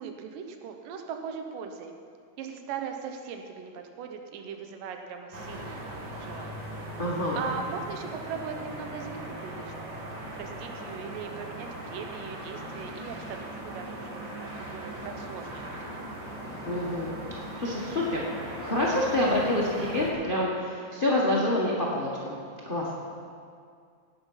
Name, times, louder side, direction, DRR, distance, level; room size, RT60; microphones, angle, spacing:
voice 1, 0.0-1.9 2.4-6.7 7.3-9.9 10.3-16.0, right 6 dB, 80° right, 5 dB, 2.5 m, -39 dB
sound 1, 5.3-20.1, right 1 dB, 40° right, 1.8 m, -39 dB
voice 2, 7.0-7.4 16.6-18.2 18.6-22.4 22.6-22.9, left 1 dB, 70° left, -4 dB, 0.5 m, -27 dB
17.5 x 8.0 x 5.7 m, 2.2 s
omnidirectional pair, 3.9 m